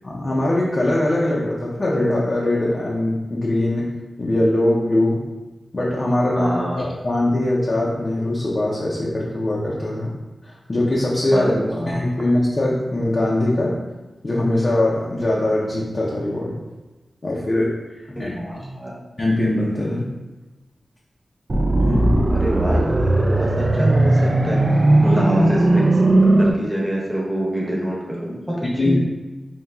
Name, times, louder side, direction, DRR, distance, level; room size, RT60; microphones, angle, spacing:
voice 1, 0.0-5.2 5.7-10.1 10.4-11.5 11.9-13.8 14.2-16.6 17.2-17.8 18.1-18.4 19.2-20.2 21.8-22.3 25.0-25.2 28.8-29.0, left 1 dB, 35° left, -5 dB, 0.6 m, -21 dB
voice 2, 6.4-6.8 11.3-12.0 18.2-18.9 22.3-25.8 26.4-28.6 28.8-29.0, right 1 dB, 10° right, -4 dB, 0.9 m, -26 dB
sound 1, 21.5-26.5, right 2 dB, 35° right, 0.3 m, -17 dB
5.3 x 2.8 x 2.3 m, 1.1 s
wide cardioid pair, 140°, 0 cm